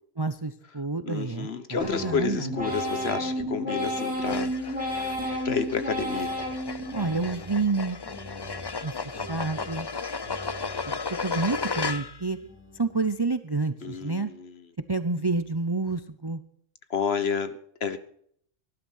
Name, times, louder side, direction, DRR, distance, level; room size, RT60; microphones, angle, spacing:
voice 1, 0.2-2.5 6.9-8.0 8.8-9.9 10.9-12.4 12.7-14.3 14.9-16.4, right 3 dB, 25° right, 12 dB, 0.6 m, -29 dB
voice 2, 1.0-5.2 5.4-6.3 13.8-14.6 16.9-18.0, left 5 dB, 55° left, 12 dB, 1.4 m, -30 dB
sound 1, 1.8-7.6 8.0-8.7 9.1-9.8 10.2-10.9 11.3-11.9 12.4-13.0, equal, 5° right, 7.7 m, -33 dB
sound 2, 4.2-12.3, left 4 dB, 30° left, 0.5 m, -34 dB
18.5 x 12.0 x 6.3 m, 0.63 s
omnidirectional pair, 1.3 m